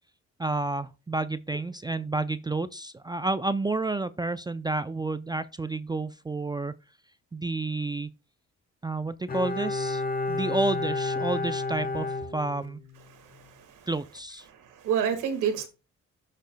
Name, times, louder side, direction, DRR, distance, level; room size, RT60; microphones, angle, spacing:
voice 1, 0.4-6.7 7.3-8.1 8.8-10.0 10.3-12.1 12.3-12.8 13.9-14.5, right 2 dB, 15° right, 0.4 m, -30 dB
Bowed string instrument, 9.3-13.0 13.3-13.4, left 3 dB, 30° left, 1.1 m, -31 dB
voice 2, 13.1-13.9 14.5-15.7, right 8 dB, 90° right, 1.9 m, -30 dB
13.5 x 6.6 x 2.2 m
cardioid pair, 90°, 30 cm